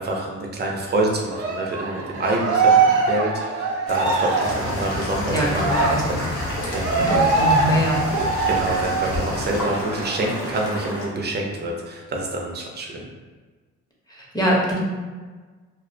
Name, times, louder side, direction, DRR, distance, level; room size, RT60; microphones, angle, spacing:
voice 1, 0.0-5.7 6.1-6.2 6.7-6.9 8.4-13.0, right 1 dB, 35° right, 0 dB, 0.5 m, -27 dB
Cheering, 1.3-9.3 9.7-9.8 10.2-11.2, right 4 dB, 80° right, 0.6 m, -23 dB
sound 1, 3.9-11.1, equal, 75° left, 0.8 m, -32 dB
sound 2, 4.4-9.6, left 1 dB, 45° left, 0.8 m, -31 dB
voice 2, 5.3-6.0 6.9-8.1 14.1-14.8, right 1 dB, 15° left, -5 dB, 0.7 m, -23 dB
2.4 x 2.1 x 2.6 m, 1.4 s
cardioid pair, 90°, 30 cm